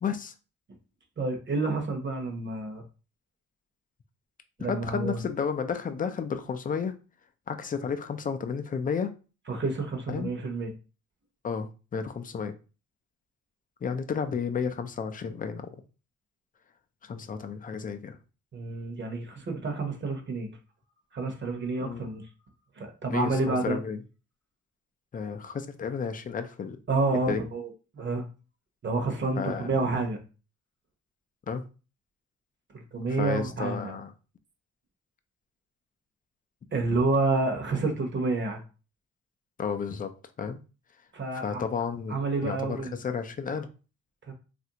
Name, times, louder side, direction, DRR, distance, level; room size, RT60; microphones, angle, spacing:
voice 1, 0.0-0.3 4.7-7.0 7.5-9.1 10.1-10.3 11.4-12.5 13.8-15.7 17.0-18.2 21.8-22.1 23.1-24.0 25.1-26.8 27.3-27.4 29.4-29.7 31.5-31.6 33.2-34.1 39.6-40.1 40.4-40.6 41.4-43.7, left 6 dB, 30° left, 8 dB, 0.4 m, -32 dB
voice 2, 1.2-2.8 4.6-5.2 9.5-10.7 18.5-20.5 21.1-22.3 22.8-23.8 26.9-28.2 28.8-30.2 32.9-33.9 36.7-38.6 41.1-41.6 42.1-43.0 44.3-44.4, right 3 dB, 40° right, 3 dB, 0.9 m, -29 dB
3.1 x 2.5 x 2.8 m, 0.34 s
cardioid pair, 90°, 30 cm